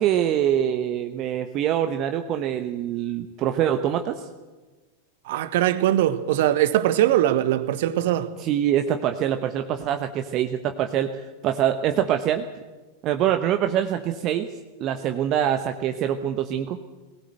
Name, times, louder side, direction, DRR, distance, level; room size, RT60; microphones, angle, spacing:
voice 1, 0.0-4.3 8.4-12.4 13.0-14.5 14.8-16.9, right 10 dB, 35° right, 1.1 m, -24 dB
voice 2, 5.2-8.3, right 13 dB, 55° right, 1.3 m, -21 dB
20.5 x 18.0 x 8.0 m
figure-of-eight pair, 90°, 0 cm